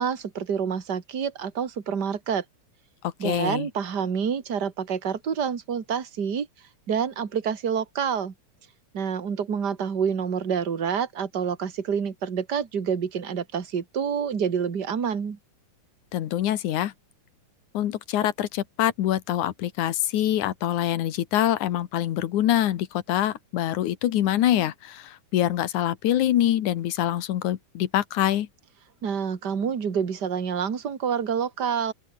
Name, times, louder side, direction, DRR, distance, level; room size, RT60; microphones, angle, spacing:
voice 1, 0.0-2.4 3.2-6.5 6.9-8.3 8.9-15.4 29.0-31.9, right 7 dB, 35° right, 2.5 m, -27 dB
voice 2, 3.0-3.7 16.1-16.9 17.7-28.5, left 12 dB, 85° left, 2.8 m, -25 dB
open air
omnidirectional pair, 3.4 m